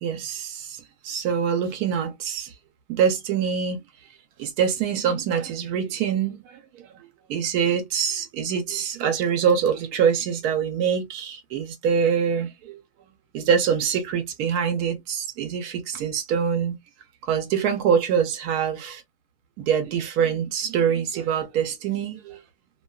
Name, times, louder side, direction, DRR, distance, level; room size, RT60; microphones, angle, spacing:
voice 1, 0.0-2.5 2.9-3.8 4.4-6.6 7.3-12.8 13.3-16.8 17.3-19.0 19.6-22.4, right 7 dB, 90° right, 1.1 m, -24 dB
2.7 x 2.2 x 2.2 m
omnidirectional pair, 1.6 m